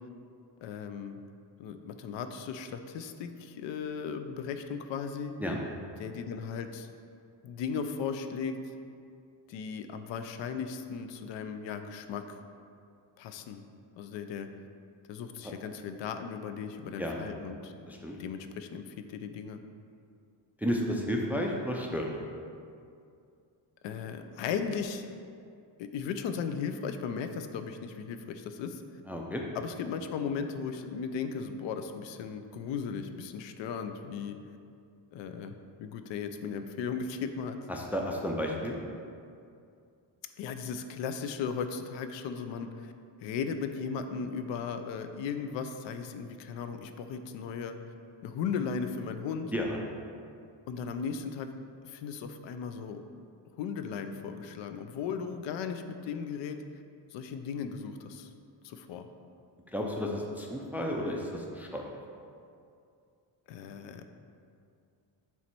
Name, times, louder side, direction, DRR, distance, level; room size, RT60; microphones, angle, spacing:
voice 1, 0.6-1.2 1.6-5.3 6.0-6.9 7.4-8.6 9.5-12.2 13.2-13.6 14.0-14.5 15.1-17.7 18.2-19.6 23.8-25.1 25.8-28.8 29.5-34.4 35.1-35.5 35.8-37.6 40.4-42.9 43.2-47.7 48.2-49.5 50.7-51.5 51.8-53.0 53.6-56.6 57.1-58.3 58.6-59.1 63.5-64.1, left 6 dB, 80° left, 8 dB, 0.5 m, -36 dB
voice 2, 20.6-22.1 29.1-29.4 37.7-38.8 49.5-49.8 59.7-62.0, equal, 5° right, 0 dB, 0.3 m, -32 dB
7.1 x 3.0 x 4.5 m, 2.4 s
cardioid pair, 135°, 44 cm